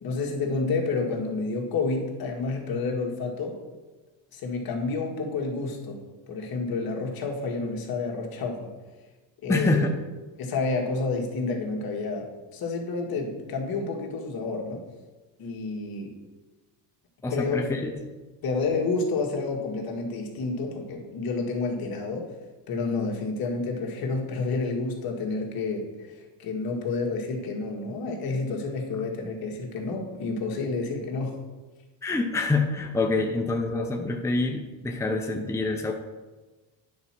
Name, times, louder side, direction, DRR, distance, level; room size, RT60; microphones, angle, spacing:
voice 1, 0.0-3.6 4.3-8.7 9.4-9.9 10.4-14.8 15.4-16.2 17.3-17.8 18.4-22.3 22.7-31.4, left 3 dB, 55° left, 0 dB, 1.9 m, -29 dB
voice 2, 9.5-9.9 17.2-17.9 32.0-35.9, left 3 dB, 5° left, 2 dB, 0.7 m, -26 dB
9.5 x 4.3 x 6.0 m, 1.2 s
cardioid pair, 110°, 42 cm